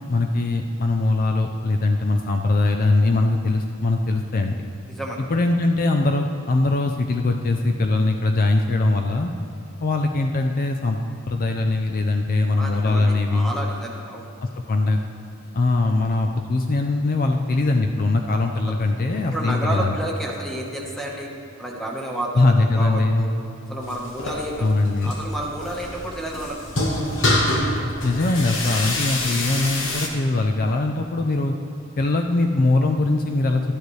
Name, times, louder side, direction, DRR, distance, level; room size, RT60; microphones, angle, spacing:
voice 1, 0.0-4.7 5.3-9.3 9.8-11.0 11.3-13.5 14.7-15.0 15.5-20.0 22.4-23.3 24.6-25.1 28.0-31.5 32.0-33.6, left 2 dB, 45° left, 4 dB, 0.5 m, -21 dB
voice 2, 4.9-5.2 12.5-14.3 19.3-21.3 21.6-23.3 23.7-24.7 25.0-26.6, right 1 dB, ahead, -2 dB, 1.2 m, -30 dB
sound 1, 23.8-30.1, left 1 dB, 65° left, 1.2 m, -26 dB
12.0 x 10.5 x 3.2 m, 2.9 s
head